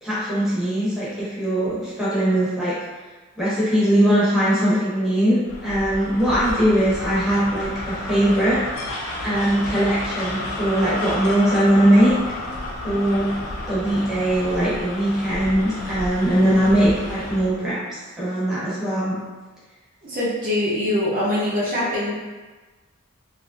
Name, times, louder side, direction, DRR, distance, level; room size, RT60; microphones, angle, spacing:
voice 1, 0.0-2.8 3.4-8.6 9.2-12.1 12.8-13.3 13.7-19.2, right 1 dB, ahead, -10 dB, 0.7 m, -20 dB
sound 1, 5.5-17.5, left 1 dB, 75° left, 0.5 m, -31 dB
voice 2, 20.0-22.1, left 1 dB, 40° right, -7 dB, 0.6 m, -23 dB
2.8 x 2.5 x 2.4 m, 1.3 s
head